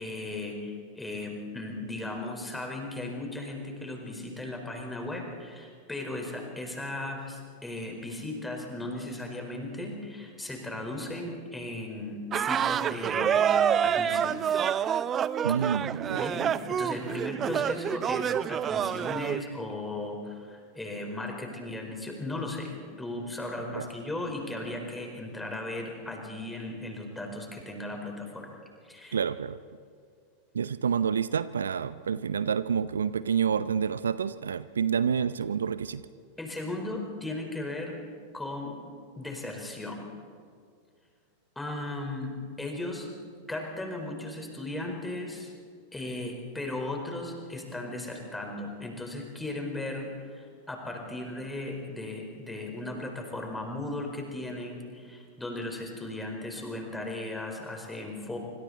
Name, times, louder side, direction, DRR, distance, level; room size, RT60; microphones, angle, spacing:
voice 1, 0.0-14.7 16.2-28.6 28.8-29.2 36.4-38.0 38.3-38.8 39.2-40.0 41.5-43.1 43.5-45.5 45.9-50.1 50.3-58.4, left 2 dB, 5° left, 2 dB, 4.7 m, -36 dB
sound 1, 12.3-19.4, right 9 dB, 25° right, 0.5 m, -27 dB
voice 2, 15.4-16.3 23.7-23.9 29.1-29.6 30.5-36.0, right 7 dB, 70° right, 15 dB, 0.6 m, -28 dB
26.0 x 26.0 x 4.2 m, 2.1 s
figure-of-eight pair, 90°, 0 cm